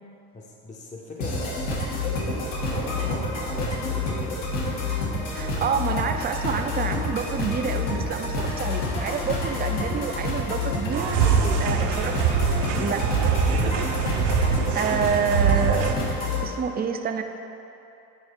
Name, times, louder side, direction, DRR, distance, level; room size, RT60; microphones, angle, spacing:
voice 1, 0.3-1.7 2.2-4.4 11.2-11.6 13.4-13.9, left 1 dB, 20° left, -2 dB, 0.7 m, -37 dB
sound 1, 1.2-16.4, left 3 dB, 80° left, 1.6 m, -28 dB
voice 2, 5.3-11.1 11.6-12.2 12.8-13.1 14.7-16.1 16.4-17.2, right 6 dB, 25° right, 6 dB, 0.4 m, -28 dB
sound 2, 10.9-15.9, right 8 dB, 70° right, 0.7 m, -24 dB
8.7 x 4.2 x 4.5 m, 2.8 s
cardioid pair, 110°, 42 cm